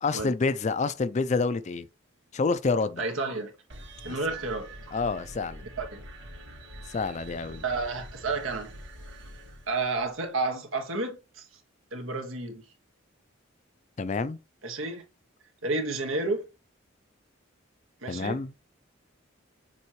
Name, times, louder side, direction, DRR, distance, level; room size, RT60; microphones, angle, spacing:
voice 1, 0.0-1.9 2.3-3.0 4.0-4.2 4.9-5.6 6.9-7.6 14.0-14.4 18.1-18.5, left 4 dB, 35° left, 0.4 m, -28 dB
voice 2, 3.0-3.5 4.0-4.7 5.8-6.0 7.6-8.7 9.7-11.5 11.9-12.6 14.6-15.0 15.6-16.4 18.0-18.4, right 3 dB, 85° right, 1.6 m, -31 dB
sound 1, 3.7-10.3, right 1 dB, 60° right, 1.7 m, -45 dB
7.0 x 4.5 x 3.1 m
head